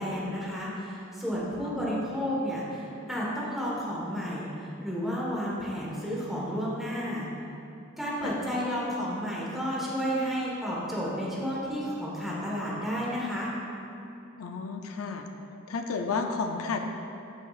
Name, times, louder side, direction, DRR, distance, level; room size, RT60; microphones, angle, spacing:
voice 1, 0.0-7.3 8.0-13.5, equal, ahead, -6 dB, 1.4 m, -31 dB
voice 2, 1.6-2.1 8.2-8.4 14.4-15.3 15.7-16.8, left 4 dB, 90° left, 4 dB, 0.5 m, -32 dB
12.5 x 4.8 x 2.5 m, 2.7 s
head